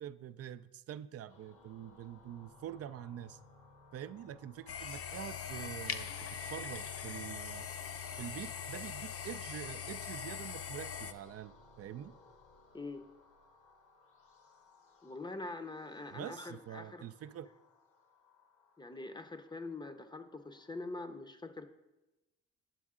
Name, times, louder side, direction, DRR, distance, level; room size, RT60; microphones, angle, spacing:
voice 1, 0.0-3.4 3.9-7.7 8.2-12.1 16.1-17.5, right 10 dB, 55° right, 14 dB, 0.4 m, -46 dB
sound 1, 1.3-21.1, left 3 dB, 75° left, 1.1 m, -62 dB
sound 2, 4.7-11.1, left 7 dB, 50° left, 0.7 m, -42 dB
voice 2, 12.7-13.1 15.0-17.1 18.8-21.7, left 2 dB, 15° left, 9 dB, 0.6 m, -44 dB
8.5 x 7.0 x 3.7 m, 1.0 s
cardioid pair, 90°, 30 cm